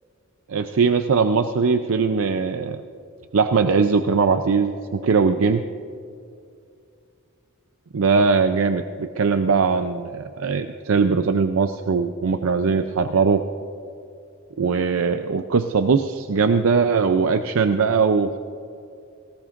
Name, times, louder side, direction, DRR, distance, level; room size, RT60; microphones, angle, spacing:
voice 1, 0.5-2.8 3.3-5.6 7.9-13.4 14.6-18.4, right 5 dB, 75° right, 8 dB, 0.5 m, -20 dB
19.0 x 18.0 x 2.5 m, 2.5 s
head